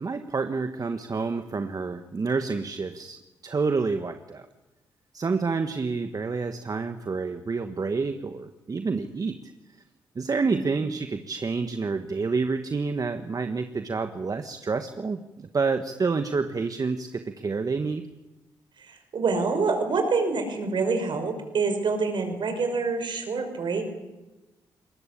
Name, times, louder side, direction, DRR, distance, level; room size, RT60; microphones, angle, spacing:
voice 1, 0.0-3.2 3.4-4.4 5.1-9.4 10.1-18.0, right 4 dB, 40° right, 8 dB, 1.5 m, -28 dB
voice 2, 10.5-10.9 18.8-23.8, right 4 dB, 60° right, 6 dB, 5.7 m, -26 dB
22.5 x 20.0 x 8.7 m, 1.1 s
supercardioid pair, 55°, 9 cm